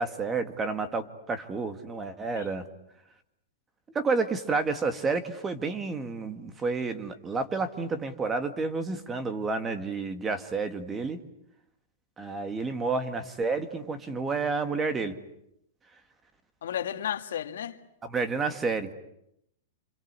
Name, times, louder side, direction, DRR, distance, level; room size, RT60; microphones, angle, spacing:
voice 1, 0.0-2.6 4.0-11.2 12.2-15.2 18.0-18.9, right 4 dB, 15° right, 9 dB, 1.9 m, -30 dB
voice 2, 16.6-17.8, left 10 dB, 80° left, 7 dB, 2.0 m, -33 dB
27.5 x 26.5 x 8.3 m, 0.78 s
supercardioid pair, 160°, 0 cm